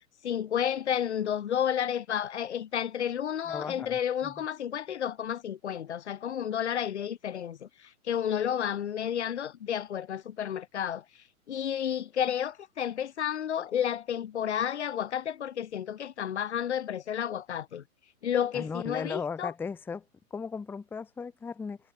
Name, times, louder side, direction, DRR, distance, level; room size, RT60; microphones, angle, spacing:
voice 1, 0.2-7.7 8.1-11.0 11.5-17.8 18.2-19.5, left 9 dB, 50° left, 1.4 m, -31 dB
voice 2, 3.5-4.3 18.5-20.0 20.3-21.8, left 5 dB, 5° left, 1.0 m, -37 dB
figure-of-eight pair, 120°, 43 cm